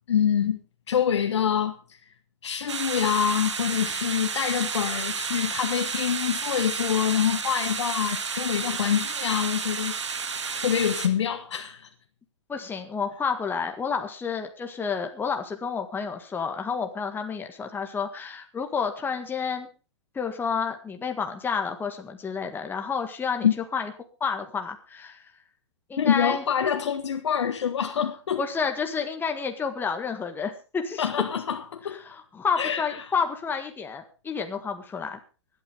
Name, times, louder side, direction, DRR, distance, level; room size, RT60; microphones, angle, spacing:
voice 1, 0.1-0.6 0.9-1.8 2.4-9.9 10.5-11.9 23.4-23.5 26.0-28.4 31.0-32.0 32.6-32.8, left 8 dB, 80° left, 1.3 m, -25 dB
sound 1, 2.7-11.1, right 5 dB, 90° right, 2.1 m, -31 dB
voice 2, 12.5-19.7 20.1-23.9 24.2-25.2 25.9-26.4 28.4-31.1 31.9-35.2, left 5 dB, 15° left, 1.7 m, -30 dB
24.5 x 8.9 x 3.6 m
hypercardioid pair, 120°, 15 cm